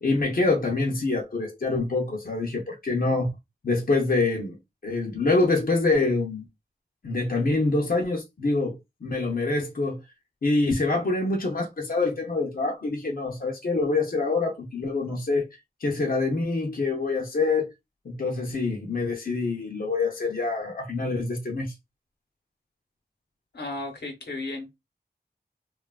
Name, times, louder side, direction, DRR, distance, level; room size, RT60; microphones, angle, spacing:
voice 1, 0.0-3.3 3.6-4.6 4.8-6.5 7.0-8.7 9.0-10.0 10.4-15.5 15.8-17.7 18.0-21.7, left 3 dB, 60° left, 0.6 m, -25 dB
voice 2, 23.5-24.8, left 2 dB, 85° left, 0.9 m, -34 dB
3.0 x 2.3 x 2.3 m
wide cardioid pair, 50°, 17 cm